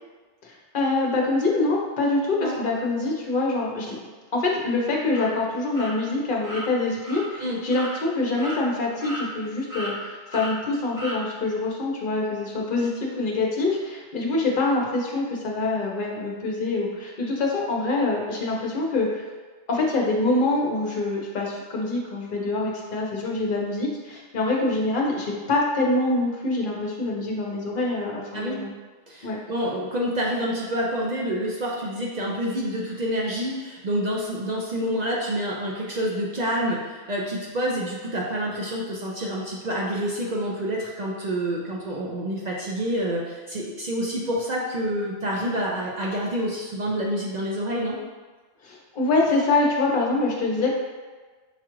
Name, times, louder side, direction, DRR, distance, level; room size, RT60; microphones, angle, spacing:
voice 1, 0.4-4.0 4.3-19.3 19.7-28.7 29.2-29.4 48.6-50.8, left 2 dB, 50° left, -1 dB, 0.9 m, -25 dB
sound 1, 5.1-5.3 5.7-5.9 6.4-6.6 7.0-7.2 7.7-7.9 8.4-8.6 9.0-9.5 9.7-9.9 10.3-10.5 11.0-11.2, right 1 dB, 20° right, 0.9 m, -34 dB
voice 2, 29.1-48.0, equal, 55° right, -3 dB, 0.5 m, -28 dB
5.7 x 2.4 x 3.0 m, 1.3 s
omnidirectional pair, 1.2 m